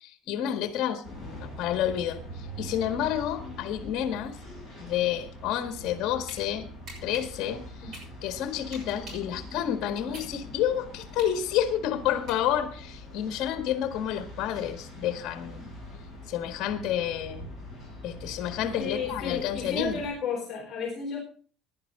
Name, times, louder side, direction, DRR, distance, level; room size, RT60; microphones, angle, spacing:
voice 1, 0.0-4.4 4.8-6.7 7.0-15.7 16.3-17.5 18.0-20.0, left 10 dB, 45° left, 8 dB, 1.7 m, -30 dB
sound 1, 1.0-20.1, equal, 20° right, 7.2 m, -43 dB
sound 2, 6.3-6.4 6.9-9.3 9.8-12.8, right 1 dB, 45° right, 6.2 m, -46 dB
voice 2, 18.8-21.2, left 5 dB, 25° left, -3 dB, 4.1 m, -32 dB
16.5 x 11.0 x 3.7 m, 0.42 s
cardioid pair, 180°, 0 cm